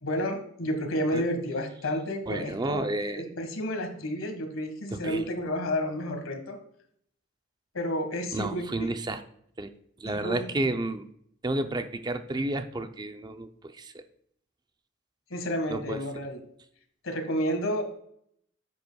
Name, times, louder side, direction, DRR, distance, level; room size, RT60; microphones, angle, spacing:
voice 1, 0.0-6.6 7.7-8.9 10.0-10.7 15.3-16.4 17.0-18.0, equal, 85° left, 5 dB, 1.6 m, -31 dB
voice 2, 2.3-3.3 4.9-5.3 8.3-9.2 9.6-9.7 10.0-11.1 11.4-14.0 15.7-16.0, right 2 dB, 20° right, 9 dB, 0.5 m, -31 dB
10.0 x 7.9 x 2.3 m, 0.68 s
head